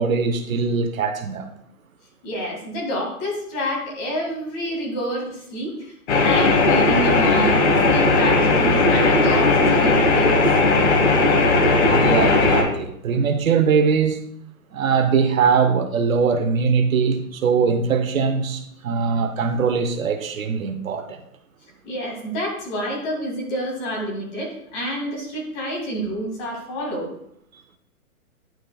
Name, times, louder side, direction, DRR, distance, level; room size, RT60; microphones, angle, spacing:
voice 1, 0.0-1.5 11.9-14.2 14.7-21.2, right 5 dB, 65° right, 8 dB, 0.9 m, -21 dB
voice 2, 2.2-7.6 7.8-10.4 13.1-13.2 21.8-27.1, equal, 25° left, -1 dB, 2.0 m, -28 dB
sound 1, 6.1-12.6, left 3 dB, 50° left, 1.4 m, -17 dB
10.0 x 6.1 x 2.3 m, 0.72 s
hypercardioid pair, 150°, 45 cm